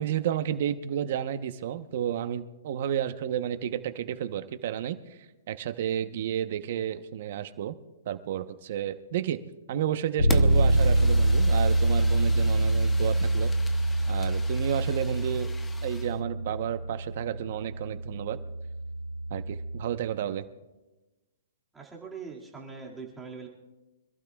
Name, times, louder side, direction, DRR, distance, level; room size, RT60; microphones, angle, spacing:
voice 1, 0.0-5.2 5.5-7.7 8.1-9.4 9.7-13.5 14.1-15.5 15.8-18.4 19.3-20.4, right 10 dB, 50° right, 9 dB, 1.0 m, -31 dB
Bass guitar, 10.2-20.0, right 1 dB, 85° left, 6.4 m, -25 dB
Fire, 10.3-16.2, left 3 dB, 10° left, 0.7 m, -43 dB
voice 2, 21.7-23.5, right 5 dB, 5° right, -3 dB, 2.2 m, -42 dB
26.0 x 14.5 x 2.4 m, 1.1 s
hypercardioid pair, 155°, 0 cm